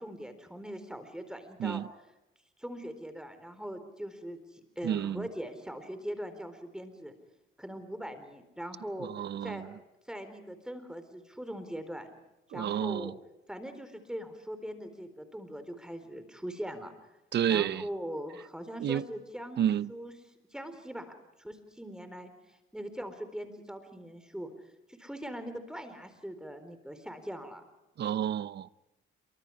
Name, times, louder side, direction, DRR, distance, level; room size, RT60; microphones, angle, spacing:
voice 1, 0.0-1.8 2.6-7.1 7.6-9.1 9.4-9.7 10.1-12.1 12.5-13.2 13.5-16.9 17.5-20.1 20.5-21.1 21.4-24.5 24.9-27.6, equal, 5° right, 4.1 m, -41 dB
voice 2, 4.8-5.3 9.0-9.7 12.5-13.1 17.3-17.8 18.8-19.0 19.6-19.9 28.0-28.7, right 10 dB, 60° right, 0.7 m, -30 dB
27.5 x 24.0 x 4.8 m
cardioid pair, 90°, 20 cm